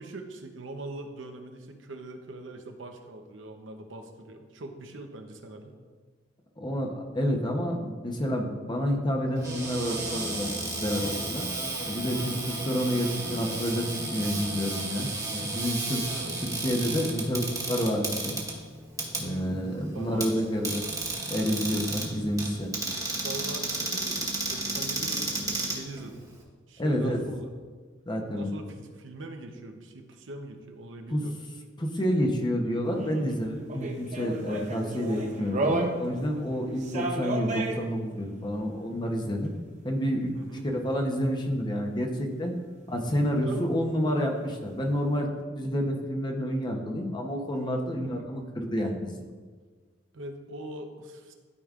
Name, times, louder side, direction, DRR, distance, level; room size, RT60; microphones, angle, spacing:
voice 1, 0.0-5.8 12.1-12.4 14.9-15.2 16.1-16.3 19.2-19.7 19.9-20.4 23.0-26.2 26.7-27.5 28.2-31.4 36.5-36.8 40.3-40.7 43.3-43.7 47.9-48.2 50.1-51.3, right 2 dB, 80° right, 4 dB, 0.8 m, -42 dB
voice 2, 6.6-11.5 11.9-16.0 16.4-18.4 19.2-20.8 21.3-22.7 26.8-27.2 28.1-28.5 31.1-31.2 31.8-39.5 39.8-40.4 40.6-42.5 42.9-45.3 45.6-49.2, equal, 25° left, 2 dB, 0.8 m, -29 dB
Cupboard open or close, 9.3-26.4, right 2 dB, 20° right, 1.3 m, -33 dB
sound 1, 32.8-36.3 36.7-37.8 41.4-41.5, right 2 dB, 40° right, 0.7 m, -32 dB
12.5 x 5.1 x 2.4 m, 1.5 s
head